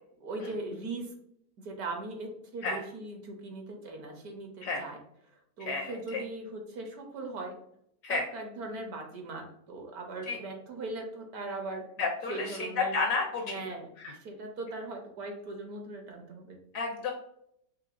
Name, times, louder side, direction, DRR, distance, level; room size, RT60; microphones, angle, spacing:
voice 1, 0.2-1.1 1.6-5.0 5.3-7.5 8.1-11.8 12.3-13.0 13.4-16.6, right 2 dB, 65° right, 2 dB, 1.2 m, -39 dB
voice 2, 5.6-6.2 8.0-8.2 10.3-10.4 12.0-13.5 16.7-17.1, left 4 dB, 65° left, 2 dB, 0.8 m, -31 dB
4.6 x 3.4 x 2.5 m, 0.73 s
omnidirectional pair, 1.8 m